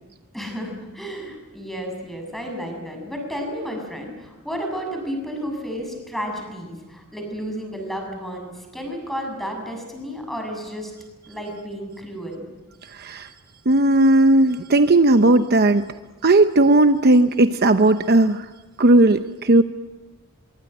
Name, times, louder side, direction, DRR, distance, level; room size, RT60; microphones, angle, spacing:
voice 1, 0.3-10.9 11.3-12.4, equal, ahead, 3 dB, 7.2 m, -32 dB
voice 2, 12.9-13.3 13.7-15.9 16.2-18.5 18.8-19.6, right 2 dB, 50° right, 9 dB, 0.8 m, -16 dB
24.5 x 23.5 x 9.1 m, 1.2 s
head